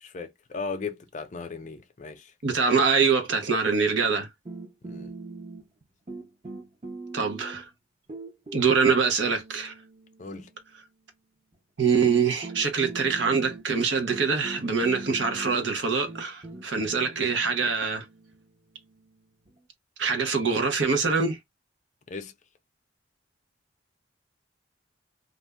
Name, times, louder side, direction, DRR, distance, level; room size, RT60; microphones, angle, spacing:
voice 1, 0.0-2.3 4.8-5.1 10.2-10.5 22.1-22.3, left 4 dB, 40° left, 0.5 m, -37 dB
voice 2, 2.4-4.3 7.1-7.7 8.5-9.7 11.8-18.0 20.0-21.4, right 5 dB, 75° right, 0.8 m, -24 dB
sound 1, 4.4-5.8 6.1-7.7 8.1-10.5 11.5-11.6 12.0-19.6, right 3 dB, 35° right, 0.8 m, -42 dB
2.6 x 2.1 x 3.4 m
head